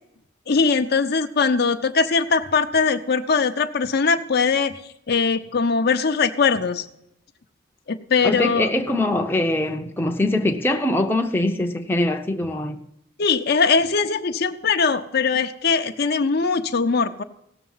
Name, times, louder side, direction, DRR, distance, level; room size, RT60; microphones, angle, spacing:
voice 1, 0.5-4.7 5.1-6.8 7.9-8.7 13.2-17.2, left 5 dB, 50° left, 0.6 m, -21 dB
voice 2, 8.2-12.8, left 1 dB, 10° left, 0.7 m, -22 dB
16.5 x 6.8 x 5.6 m
head